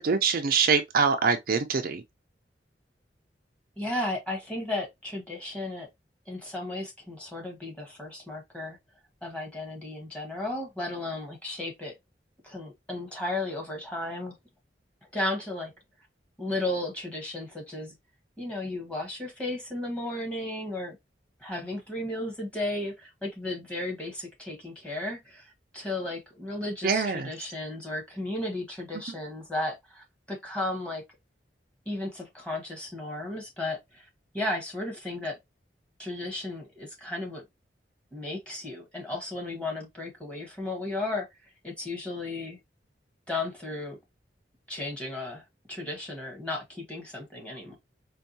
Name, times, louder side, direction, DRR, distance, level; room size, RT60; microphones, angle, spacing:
voice 1, 0.0-2.0 26.8-27.3, right 5 dB, 55° right, 0.4 m, -24 dB
voice 2, 3.8-5.9 6.3-8.8 9.2-11.9 12.4-14.4 15.1-15.7 16.4-17.9 18.4-21.0 21.4-31.0 31.8-34.1 34.3-35.4 36.0-37.4 38.1-41.3 41.6-42.6 43.3-44.0 44.7-45.4 45.7-47.8, left 2 dB, 5° left, 1.2 m, -34 dB
4.4 x 2.3 x 2.7 m
head